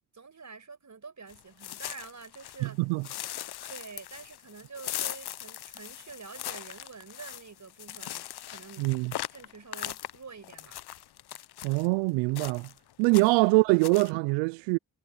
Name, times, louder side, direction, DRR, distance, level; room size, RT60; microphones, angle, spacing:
voice 1, 0.1-2.8 3.7-8.9 9.3-10.8 13.0-13.2, right 5 dB, 40° right, 5.5 m, -47 dB
sound 1, 1.3-2.7 3.0-11.9 12.3-12.8 13.0-13.5 13.8-14.1, left 13 dB, 60° left, 0.8 m, -40 dB
voice 2, 2.6-3.0 8.8-9.1 11.6-12.7 13.0-14.8, right 26 dB, 90° right, 0.6 m, -24 dB
hypercardioid pair, 45°, 43 cm